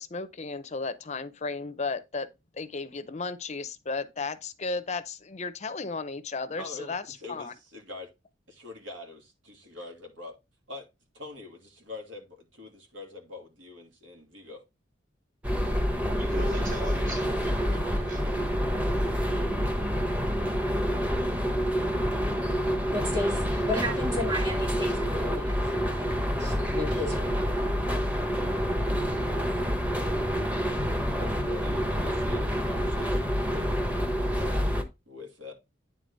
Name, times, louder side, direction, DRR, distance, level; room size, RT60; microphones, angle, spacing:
voice 1, 0.0-2.3 2.5-7.0 7.3-7.5, left 4 dB, 35° left, 0.6 m, -34 dB
voice 2, 6.6-8.1 8.5-10.4 10.7-10.9 11.1-14.6 31.2-33.7 34.4-35.5, left 3 dB, 80° right, 2.6 m, -44 dB
sound 1, 15.4-34.8, equal, 10° right, 0.9 m, -27 dB
voice 3, 16.1-18.4, right 1 dB, 45° right, 1.3 m, -40 dB
voice 4, 22.9-25.6 25.9-26.1 26.3-27.4, left 1 dB, 30° right, 3.4 m, -33 dB
9.5 x 3.9 x 3.9 m
head